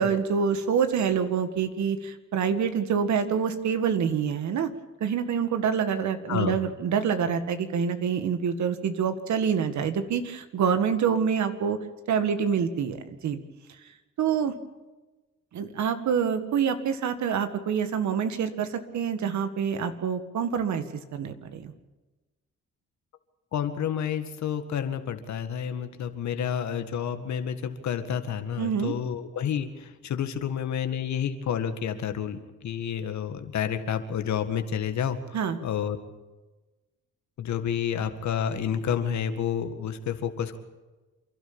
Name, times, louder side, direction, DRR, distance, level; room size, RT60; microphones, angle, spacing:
voice 1, 0.0-4.7 5.0-11.8 12.1-13.4 14.2-14.5 15.5-20.8 21.1-21.7 28.6-28.9 35.3-35.6, right 7 dB, 70° right, 9 dB, 2.0 m, -26 dB
voice 2, 23.5-36.0 37.4-40.6, left 8 dB, 65° left, 8 dB, 1.9 m, -30 dB
28.0 x 12.0 x 8.8 m, 1.2 s
cardioid pair, 90°, 30 cm